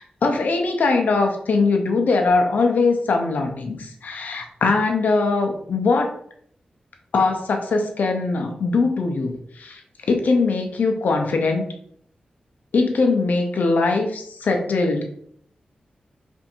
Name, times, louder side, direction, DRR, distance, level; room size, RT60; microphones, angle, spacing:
voice 1, 0.0-6.1 7.1-9.8 10.1-11.7 12.7-15.1, left 3 dB, 75° left, 4 dB, 0.7 m, -21 dB
3.5 x 2.7 x 4.3 m, 0.66 s
wide cardioid pair, 80°, 3 cm